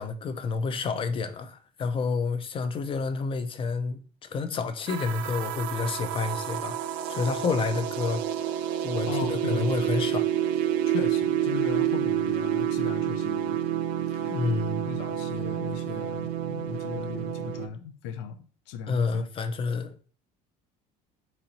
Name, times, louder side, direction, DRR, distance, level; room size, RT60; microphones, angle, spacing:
voice 1, 0.0-6.8 7.1-8.2 8.8-10.2 14.3-14.8 18.9-19.9, left 4 dB, 30° left, 0.5 m, -29 dB
sound 1, 4.9-17.7, right 10 dB, 70° right, 0.4 m, -29 dB
voice 2, 9.1-10.0 10.9-13.6 14.1-14.4 14.9-19.3, left 8 dB, 90° left, 0.4 m, -38 dB
4.0 x 2.9 x 2.9 m
cardioid pair, 120°, 17 cm